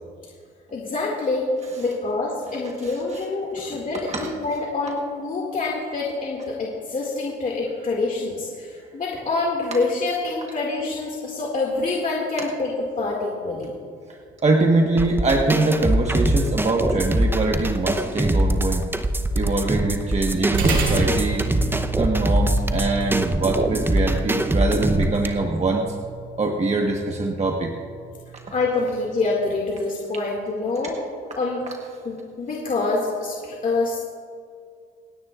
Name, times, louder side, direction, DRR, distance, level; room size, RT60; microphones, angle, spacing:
voice 1, 0.7-1.4 1.8-12.7 13.0-13.7 28.5-30.9 31.4-31.7 32.0-34.0, left 3 dB, 40° left, -3 dB, 2.1 m, -26 dB
voice 2, 2.8-3.2 3.6-3.8 4.1-4.3 14.1-18.9 19.3-21.4 22.0-26.0 26.4-27.7, right 3 dB, 35° right, 1 dB, 1.2 m, -23 dB
sound 1, 15.0-25.3, right 1 dB, 10° right, 0.8 m, -23 dB
sound 2, 20.5-29.2, right 4 dB, 75° right, 2.6 m, -30 dB
27.5 x 9.7 x 2.5 m, 2.2 s
cardioid pair, 90°, 20 cm